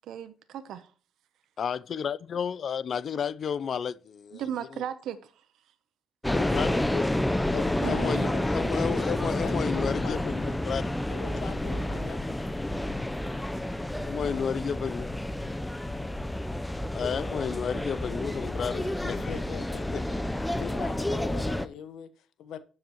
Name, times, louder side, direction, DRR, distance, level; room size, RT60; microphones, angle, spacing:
voice 1, 0.1-0.9 4.3-5.3 7.8-8.3, right 9 dB, 75° right, 0.8 m, -36 dB
voice 2, 1.6-4.4 4.7-4.8 6.3-7.1 7.5-10.9 14.0-15.1 16.9-19.3 19.9-20.0, left 7 dB, 55° left, 0.5 m, -32 dB
sound 1, 6.2-21.7, left 1 dB, 10° left, 0.7 m, -30 dB
voice 3, 7.8-10.4 11.1-12.4 18.8-20.2 20.6-22.6, left 8 dB, 80° left, 1.1 m, -41 dB
12.0 x 7.7 x 3.0 m
cardioid pair, 95°, 0 cm